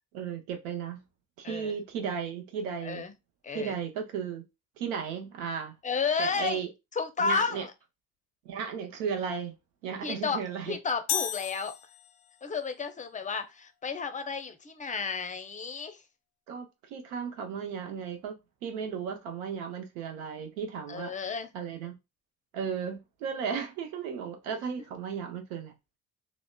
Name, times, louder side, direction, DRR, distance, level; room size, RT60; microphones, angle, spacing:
voice 1, 0.1-1.0 1.4-3.0 3.5-4.4 4.8-5.7 6.2-6.7 7.2-7.7 8.4-9.5 9.8-10.8 16.5-18.4 18.6-21.1 21.5-22.0 22.5-25.7, right 7 dB, 80° right, 0.7 m, -35 dB
voice 2, 1.4-1.7 2.8-3.1 3.4-3.8 5.8-6.6 7.0-7.7 10.0-10.4 10.7-11.7 12.4-16.0 20.9-21.5, left 5 dB, 20° left, 0.5 m, -32 dB
sound 1, 11.1-12.5, left 10 dB, 70° left, 0.6 m, -33 dB
2.9 x 2.0 x 2.2 m
hypercardioid pair, 55°, 40 cm